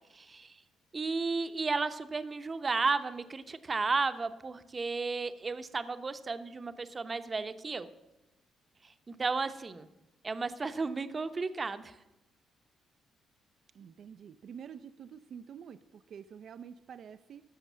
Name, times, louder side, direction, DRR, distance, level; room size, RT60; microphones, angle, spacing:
voice 1, 0.1-0.5 0.9-7.9 9.1-9.9 10.2-11.9, right 4 dB, 30° right, 10 dB, 0.8 m, -33 dB
voice 2, 13.7-17.4, right 7 dB, 60° right, 11 dB, 0.4 m, -48 dB
14.0 x 6.6 x 7.3 m, 0.97 s
cardioid pair, 90°, 0 cm